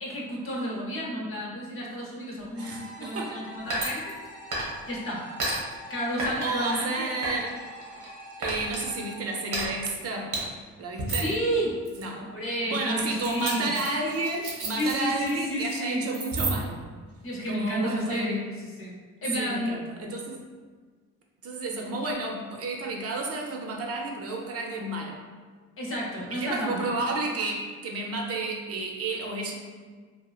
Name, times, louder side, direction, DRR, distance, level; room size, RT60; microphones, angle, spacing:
voice 1, 0.0-4.2 4.9-5.2 5.9-7.1 11.1-11.8 12.2-13.7 14.7-16.0 17.2-18.4 18.8-19.8 25.8-26.9, equal, 45° left, -3 dB, 0.8 m, -31 dB
voice 2, 2.5-3.4 6.4-7.6 8.4-10.3 10.8-11.3 12.0-12.3 12.7-16.8 17.5-18.4 19.3-20.4 21.4-25.2 26.3-29.5, right 2 dB, 50° right, 0 dB, 0.5 m, -31 dB
sound 1, 2.6-9.2, equal, 15° left, 0.6 m, -45 dB
sound 2, 3.7-4.9 5.4-5.6 6.2-6.8 7.2-8.1 8.4-8.8 9.5-9.7 10.3-10.4 11.0-11.3 11.8-12.0 13.2-15.3 15.6-15.8 16.1-16.8, right 2 dB, 90° right, 0.8 m, -31 dB
2.8 x 2.4 x 2.3 m, 1.5 s
cardioid pair, 90°, 30 cm